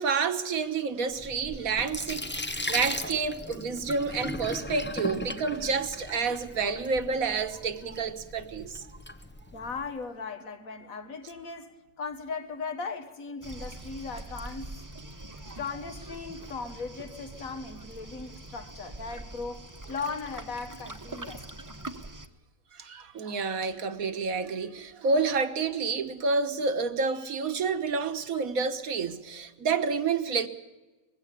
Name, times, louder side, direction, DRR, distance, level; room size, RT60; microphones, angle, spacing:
voice 1, 0.0-8.8 22.8-30.5, right 4 dB, 80° right, 1.8 m, -29 dB
Sink (filling or washing), 1.1-9.9, left 1 dB, 15° left, 0.4 m, -38 dB
voice 2, 9.5-14.8 15.6-21.4, left 4 dB, 75° left, 2.0 m, -38 dB
Waves surf, 13.4-22.3, right 2 dB, 15° right, 0.9 m, -43 dB
21.0 x 16.0 x 8.5 m
omnidirectional pair, 1.5 m